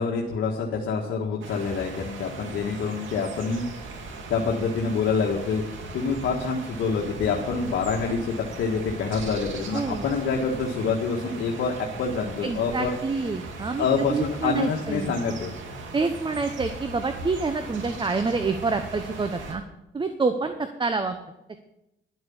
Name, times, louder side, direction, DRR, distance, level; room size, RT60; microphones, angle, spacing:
voice 1, 0.0-3.6 4.3-5.6 5.9-12.9 13.8-15.5, left 5 dB, 75° left, 0 dB, 1.7 m, -26 dB
sound 1, 1.4-19.5, right 3 dB, 75° right, 2.4 m, -39 dB
voice 2, 9.7-10.0 12.4-15.1 15.9-19.6 19.9-21.2, right 4 dB, 25° right, 8 dB, 0.9 m, -27 dB
11.5 x 7.9 x 7.2 m, 0.90 s
cardioid pair, 90°, 20 cm